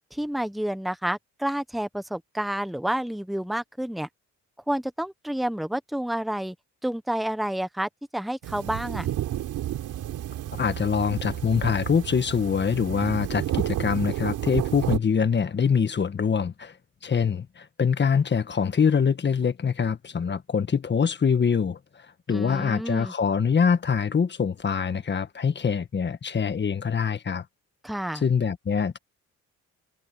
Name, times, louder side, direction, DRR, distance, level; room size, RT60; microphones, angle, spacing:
voice 1, 0.1-4.1 4.7-6.5 6.8-9.1 22.3-23.1 27.8-28.2, right 1 dB, ahead, 1.2 m, -29 dB
sound 1, 8.4-15.0, right 12 dB, 80° right, 4.2 m, -31 dB
voice 2, 10.5-16.8 17.0-27.4 28.2-29.0, left 6 dB, 35° left, 1.6 m, -24 dB
cardioid pair, 90°, 30 cm